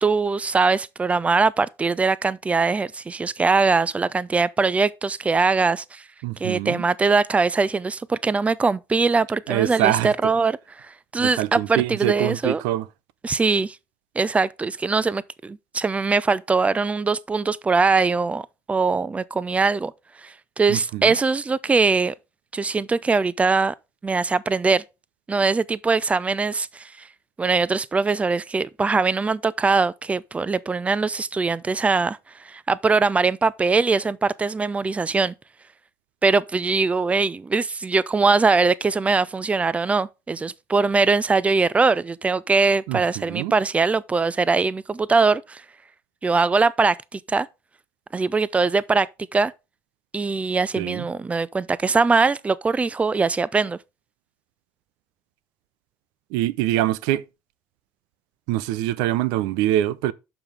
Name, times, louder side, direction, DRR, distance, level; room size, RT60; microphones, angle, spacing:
voice 1, 0.0-6.0 6.4-12.6 13.2-13.8 14.2-19.9 20.2-22.1 22.5-23.7 24.0-24.8 25.3-26.9 27.4-32.2 32.4-35.3 36.2-45.6 46.2-47.5 48.1-49.1 49.3-49.5 50.1-53.8, right 4 dB, 20° right, 0.5 m, -22 dB
voice 2, 6.2-6.8 9.5-10.3 11.2-12.9 20.7-21.1 42.9-43.5 50.8-51.1 56.3-57.2 58.5-60.1, right 14 dB, 85° right, 0.5 m, -24 dB
6.9 x 5.8 x 4.8 m
supercardioid pair, 90°, 7 cm